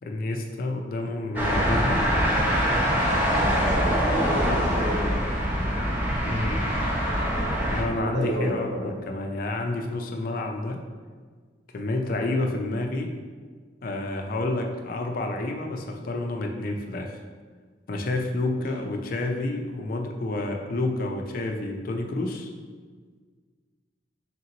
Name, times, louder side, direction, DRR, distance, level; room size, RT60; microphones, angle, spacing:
voice 1, 0.0-2.0 6.3-6.6 7.7-10.8 11.7-13.1 13.8-17.2 17.9-22.5, left 2 dB, 50° left, 3 dB, 0.4 m, -29 dB
sound 1, 1.3-7.8, equal, 10° right, 0.6 m, -24 dB
voice 2, 3.3-5.2 7.9-8.9 18.5-18.6, equal, 85° right, -4 dB, 1.0 m, -30 dB
3.5 x 2.9 x 3.8 m, 1.6 s
head